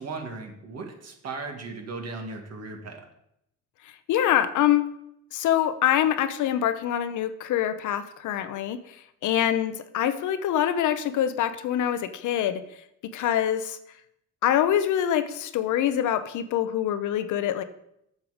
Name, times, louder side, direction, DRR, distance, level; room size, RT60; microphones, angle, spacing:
voice 1, 0.0-3.0, right 3 dB, 55° right, 3 dB, 2.0 m, -37 dB
voice 2, 4.1-4.9 5.3-9.0 9.2-12.6 13.1-13.8 14.4-17.6, left 10 dB, 80° left, 11 dB, 0.8 m, -25 dB
8.1 x 6.8 x 5.1 m, 0.76 s
cardioid pair, 90°, 30 cm